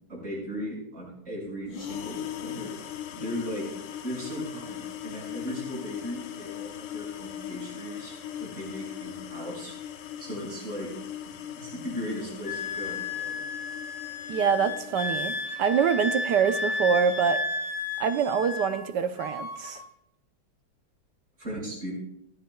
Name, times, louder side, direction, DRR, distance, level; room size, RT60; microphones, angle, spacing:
voice 1, 0.1-2.8 3.1-3.6 4.0-8.1 8.4-10.9 11.5-13.4 21.4-21.9, equal, 35° right, -6 dB, 6.0 m, -37 dB
sound 1, 1.7-15.6, left 10 dB, 70° left, 1.4 m, -40 dB
Wind instrument woodwind instrument, 12.5-18.9 19.2-19.8, left 2 dB, 90° left, 3.2 m, -33 dB
voice 2, 14.3-17.4 18.0-19.8, right 7 dB, 70° right, 9 dB, 1.2 m, -25 dB
27.0 x 9.4 x 2.3 m, 0.78 s
omnidirectional pair, 2.1 m